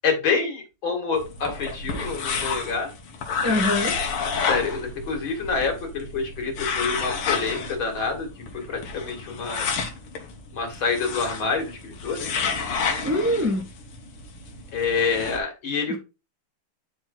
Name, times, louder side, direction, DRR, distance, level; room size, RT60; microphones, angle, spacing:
voice 1, 0.0-2.9 4.5-8.3 8.7-9.7 10.5-12.3 14.7-16.0, left 5 dB, 65° left, 2.9 m, -27 dB
sound 1, 1.1-15.4, left 5 dB, 90° left, 2.3 m, -30 dB
voice 2, 3.4-3.9 13.0-13.7 15.9-16.0, left 1 dB, 10° right, 1.3 m, -23 dB
9.5 x 4.5 x 3.9 m
omnidirectional pair, 2.3 m